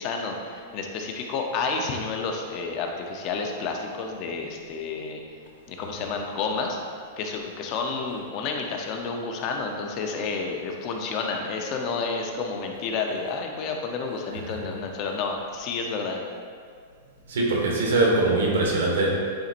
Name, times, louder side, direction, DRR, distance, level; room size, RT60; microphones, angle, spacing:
voice 1, 0.0-5.2 5.7-6.8 7.2-16.2, left 4 dB, 40° left, 2 dB, 0.7 m, -30 dB
voice 2, 17.3-19.1, right 2 dB, 85° right, -2 dB, 1.5 m, -23 dB
8.7 x 4.1 x 2.6 m, 2.1 s
hypercardioid pair, 135°, 0 cm